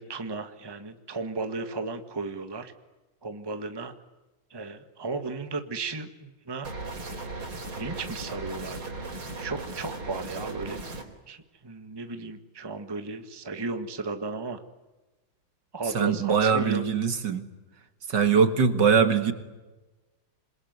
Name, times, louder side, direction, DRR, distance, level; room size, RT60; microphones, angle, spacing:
voice 1, 0.0-2.7 3.2-3.9 4.5-6.7 7.7-8.9 9.3-10.9 11.3-14.6 15.7-16.8, right 3 dB, 15° right, 8 dB, 1.5 m, -35 dB
sound 1, 6.6-11.0, right 2 dB, 85° right, 4.9 m, -37 dB
voice 2, 15.9-17.5 18.1-19.3, right 6 dB, 60° right, 9 dB, 2.5 m, -22 dB
27.5 x 22.5 x 9.6 m, 1.1 s
omnidirectional pair, 2.2 m